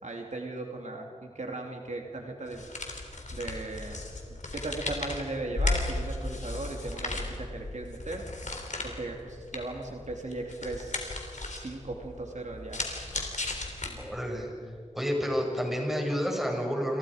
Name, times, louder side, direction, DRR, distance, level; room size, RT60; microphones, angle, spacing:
voice 1, 0.0-2.6 3.3-4.0 4.5-8.2 8.8-11.1 11.5-12.8, right 2 dB, 70° right, 1 dB, 2.9 m, -37 dB
sound 1, 2.5-14.3, left 2 dB, 75° left, 3.8 m, -36 dB
voice 2, 13.9-14.5 14.9-17.0, equal, ahead, 0 dB, 7.0 m, -30 dB
29.5 x 28.5 x 5.1 m, 2.3 s
wide cardioid pair, 50°, 13 cm